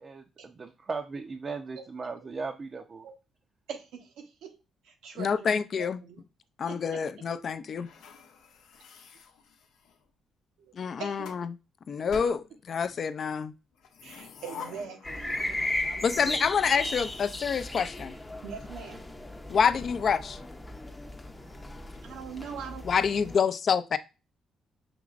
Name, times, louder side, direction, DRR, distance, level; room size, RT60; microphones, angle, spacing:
voice 1, 0.0-3.1, right 4 dB, 40° right, 0.5 m, -37 dB
voice 2, 3.7-4.6 4.8-6.2 6.6-7.0 10.6-11.4 14.0-16.4 18.4-19.0 22.0-22.8, right 6 dB, 85° right, 0.9 m, -43 dB
voice 3, 5.2-6.0 6.6-7.9 10.8-11.5 11.9-13.5 16.0-18.2 19.5-20.4 22.9-24.0, left 6 dB, 50° left, 0.4 m, -27 dB
sound 1, 7.8-10.0 10.8-11.5 12.1-13.0 13.7-15.9 16.2-16.3 16.7-18.7, left 6 dB, 85° left, 0.7 m, -48 dB
sound 2, 15.0-23.4, left 1 dB, 15° left, 0.6 m, -36 dB
6.0 x 3.0 x 2.4 m
cardioid pair, 90°, 0 cm